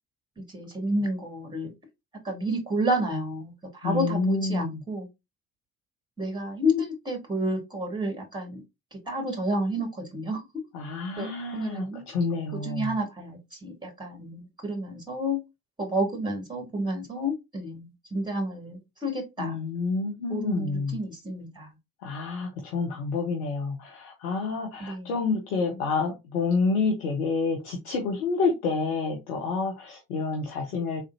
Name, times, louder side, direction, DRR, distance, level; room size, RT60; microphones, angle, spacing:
voice 1, 0.5-1.7 2.2-3.5 3.8-5.1 6.2-8.6 9.1-10.4 11.2-11.3 11.5-12.0 12.6-15.4 15.8-19.6 20.3-21.7 24.8-25.1, equal, 10° right, 2.0 m, -30 dB
voice 2, 3.8-4.8 10.7-12.9 19.4-21.0 22.0-31.0, left 4 dB, 80° left, 0.8 m, -28 dB
3.7 x 3.2 x 2.7 m
figure-of-eight pair, 50°, 44 cm